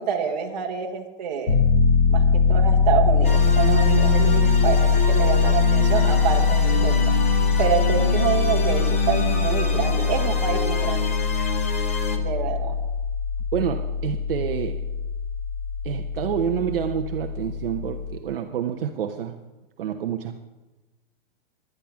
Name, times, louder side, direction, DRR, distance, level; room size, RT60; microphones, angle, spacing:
voice 1, 0.0-1.6 2.1-6.9 7.6-11.1 12.2-12.8, right 7 dB, 45° right, 3 dB, 1.6 m, -27 dB
Piano, 1.5-18.1, left 5 dB, 50° left, 3.6 m, -22 dB
sound 1, 3.2-12.2, left 1 dB, 15° left, 0.3 m, -28 dB
voice 2, 13.5-14.8 15.8-19.4 19.8-20.4, right 9 dB, 70° right, 5 dB, 0.9 m, -28 dB
11.0 x 10.5 x 5.7 m, 1.1 s
supercardioid pair, 180°, 29 cm